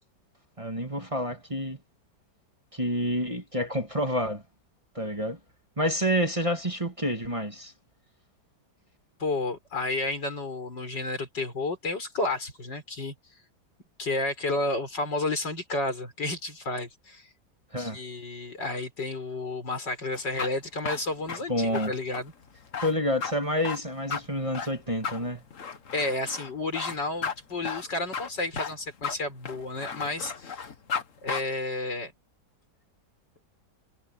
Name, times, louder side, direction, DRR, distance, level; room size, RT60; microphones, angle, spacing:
voice 1, 0.6-1.8 2.7-4.4 4.9-5.4 5.8-7.7 17.7-18.0 21.5-21.9 22.8-25.4, equal, 20° right, 2.2 m, -28 dB
voice 2, 9.2-13.1 14.0-17.3 17.8-22.3 25.9-30.6 31.2-32.1, left 2 dB, 85° left, 6.6 m, -31 dB
sound 1, 20.1-31.0 31.3-31.4, left 6 dB, 50° left, 1.7 m, -34 dB
omnidirectional pair, 1.9 m